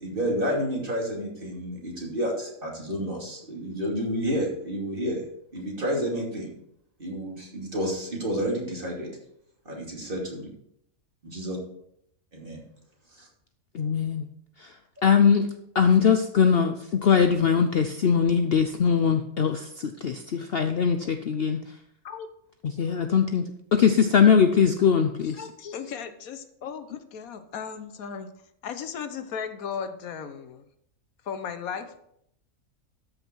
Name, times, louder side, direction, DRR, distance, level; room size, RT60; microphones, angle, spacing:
voice 1, 0.0-5.2 5.5-6.5 7.0-9.1 9.6-10.5 11.2-11.6 12.3-12.6 13.2-13.3, equal, 40° right, -2 dB, 2.9 m, -30 dB
voice 2, 13.7-14.3 14.6-14.7 15.0-15.5 15.7-16.7 17.0-21.6 22.6-23.4 23.7-25.4, left 7 dB, 55° left, 7 dB, 0.7 m, -21 dB
voice 3, 25.2-28.3 28.6-30.6 31.2-32.0, left 7 dB, 85° left, 10 dB, 1.3 m, -36 dB
13.5 x 5.6 x 4.6 m, 0.74 s
omnidirectional pair, 1.4 m